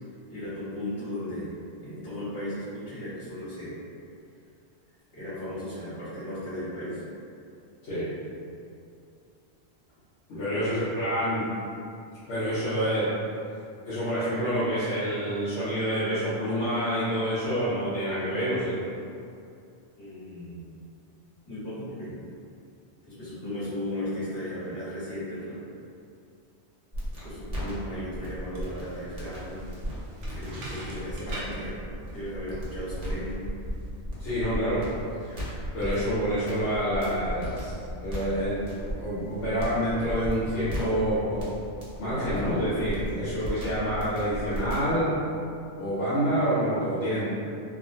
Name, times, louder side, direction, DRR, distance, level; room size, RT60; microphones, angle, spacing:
voice 1, 0.3-1.5 1.8-3.7 5.1-7.0 10.4-10.7 20.0-20.6 21.5-22.2 23.1-25.6 27.2-29.8 30.3-31.8 32.1-33.5, left 1 dB, 70° left, -14 dB, 1.7 m, -36 dB
voice 2, 10.3-11.4 12.3-13.1 13.8-18.8 34.2-34.8 35.2-37.7 38.0-41.5 42.0-45.1 45.8-47.3, equal, 85° left, -14 dB, 1.2 m, -27 dB
sound 1, 26.9-45.0, equal, 40° right, 0.9 m, -36 dB
sound 2, 28.3-33.8, right 1 dB, 70° right, 0.9 m, -44 dB
3.6 x 2.1 x 2.5 m, 2.5 s
omnidirectional pair, 1.2 m